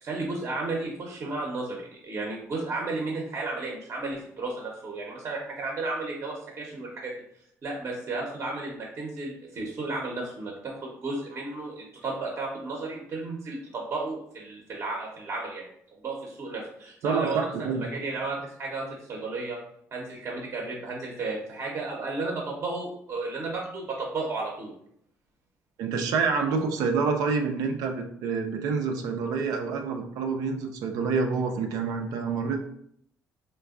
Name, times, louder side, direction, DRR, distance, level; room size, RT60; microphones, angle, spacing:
voice 1, 0.0-7.2 7.6-15.7 16.0-19.6 19.9-24.7, right 3 dB, 45° right, -1 dB, 0.7 m, -33 dB
voice 2, 17.0-17.9 25.8-32.6, right 5 dB, 75° right, 3 dB, 0.4 m, -27 dB
3.3 x 2.2 x 2.4 m, 0.69 s
supercardioid pair, 70°, 6 cm